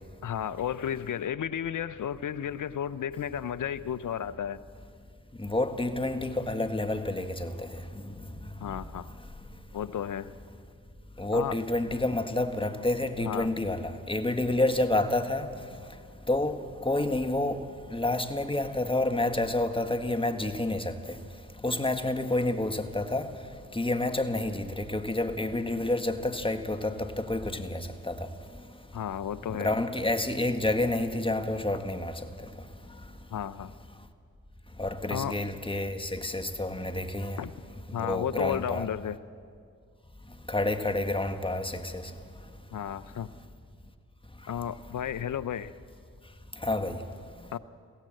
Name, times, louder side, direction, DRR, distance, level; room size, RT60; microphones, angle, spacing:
voice 1, 0.2-4.6 8.6-9.1 9.7-10.3 11.3-11.5 13.2-13.5 28.9-29.7 33.3-33.7 35.1-35.3 37.4-37.5 37.9-39.2 42.7-43.3 44.5-45.7 47.5-47.6, left 9 dB, 60° left, 0.8 m, -33 dB
voice 2, 5.4-7.7 11.2-15.5 16.3-17.6 17.9-21.0 21.6-23.3 23.7-28.2 29.5-32.1 34.8-37.4 38.0-38.9 40.5-42.0 46.6-47.0, left 2 dB, 15° left, 1.7 m, -29 dB
22.5 x 16.0 x 7.8 m
supercardioid pair, 40°, 35 cm